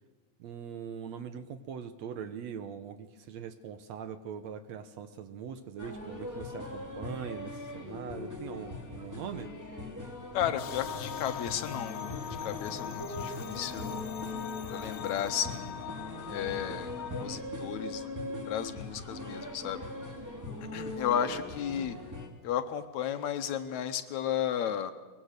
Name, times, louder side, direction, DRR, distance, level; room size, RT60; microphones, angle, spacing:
voice 1, 0.4-9.5, right 7 dB, 70° right, 10 dB, 1.8 m, -42 dB
sound 1, 5.8-22.3, left 2 dB, 5° right, 2.2 m, -41 dB
voice 2, 10.3-12.1 12.4-14.0 14.7-15.9 16.3-16.9 17.2-18.0 18.5-19.9 20.7-22.0 22.4-24.9, left 9 dB, 70° left, 9 dB, 2.0 m, -33 dB
sound 2, 10.6-17.3, left 8 dB, 85° left, 2.5 m, -41 dB
22.5 x 21.0 x 6.6 m, 1.3 s
omnidirectional pair, 3.6 m